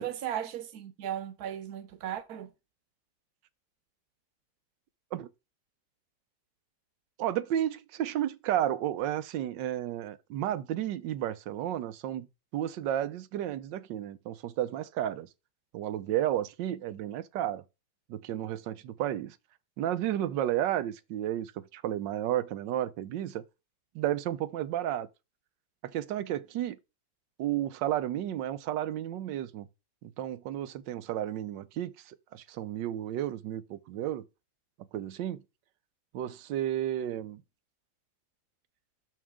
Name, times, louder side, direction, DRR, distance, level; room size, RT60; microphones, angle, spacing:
voice 1, 0.0-2.5, right 10 dB, 65° right, 1.3 m, -36 dB
voice 2, 7.2-12.3 12.5-15.3 15.7-17.6 18.1-19.4 19.8-23.4 23.9-25.1 25.8-26.8 27.4-29.7 30.0-34.2 34.9-35.4 36.1-37.4, right 12 dB, 90° right, 1.4 m, -32 dB
6.5 x 6.1 x 3.6 m
omnidirectional pair, 1.9 m